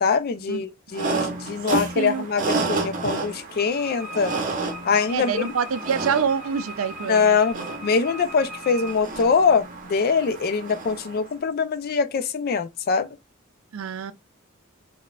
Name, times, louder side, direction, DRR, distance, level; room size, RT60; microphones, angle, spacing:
voice 1, 0.0-4.3 4.8-5.5 7.1-7.5 7.8-13.2, left 5 dB, 45° left, 0.4 m, -23 dB
sound 1, 0.9-11.2, right 3 dB, 40° right, 0.7 m, -31 dB
voice 2, 2.0-2.3 5.1-7.7 13.7-14.1, right 6 dB, 75° right, 0.4 m, -26 dB
Wind instrument woodwind instrument, 3.6-9.1, left 1 dB, ahead, 1.0 m, -40 dB
4.0 x 2.1 x 2.3 m
head